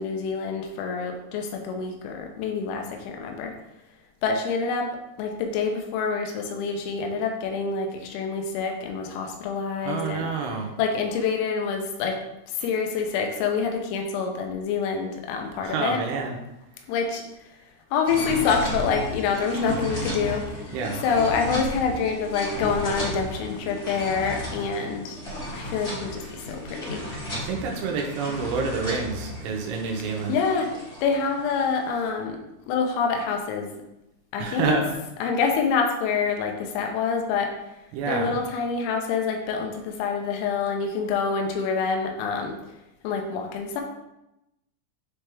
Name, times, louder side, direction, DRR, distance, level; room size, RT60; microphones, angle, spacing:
voice 1, 0.0-3.6 4.2-4.9 5.2-10.3 10.8-12.2 12.5-16.0 16.9-17.6 17.9-20.6 21.0-25.2 25.5-27.1 30.3-30.7 31.0-32.4 32.7-33.7 34.3-34.8 35.2-37.5 38.1-42.6 43.0-43.8, left 5 dB, 90° left, 2 dB, 3.6 m, -26 dB
voice 2, 9.8-10.7 15.6-16.4 20.7-21.0 27.3-30.4 34.4-34.8 37.9-38.4, right 5 dB, 80° right, 1 dB, 3.0 m, -28 dB
sound 1, 18.0-32.0, left 1 dB, 75° left, 0.7 m, -34 dB
9.8 x 3.4 x 3.4 m, 0.91 s
omnidirectional pair, 5.9 m